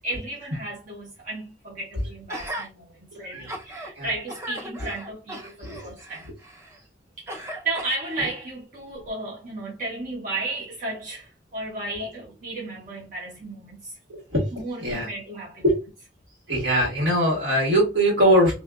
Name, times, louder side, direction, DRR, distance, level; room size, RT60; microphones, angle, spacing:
voice 1, 0.0-6.3 7.2-13.9 14.5-15.6, right 2 dB, 45° right, 0.8 m, -34 dB
Gasp, 2.3-2.7 3.2-3.9 4.3-6.8 7.3-8.3 9.0-9.1, right 1 dB, 15° right, 0.5 m, -37 dB
voice 2, 16.5-18.6, equal, 75° right, 1.5 m, -21 dB
2.7 x 2.3 x 2.2 m
head